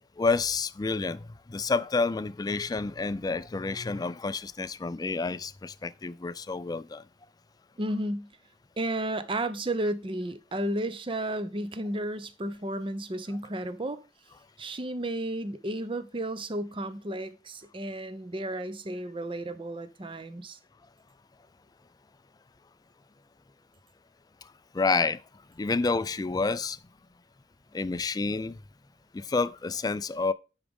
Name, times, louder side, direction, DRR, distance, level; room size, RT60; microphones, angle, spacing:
voice 1, 0.2-7.0 24.7-25.2 25.6-26.8 27.7-28.6 29.1-30.3, left 4 dB, 20° left, 0.3 m, -29 dB
voice 2, 7.8-8.3 8.8-14.0 14.6-20.6, right 1 dB, 30° right, 0.7 m, -33 dB
11.0 x 4.9 x 3.6 m
head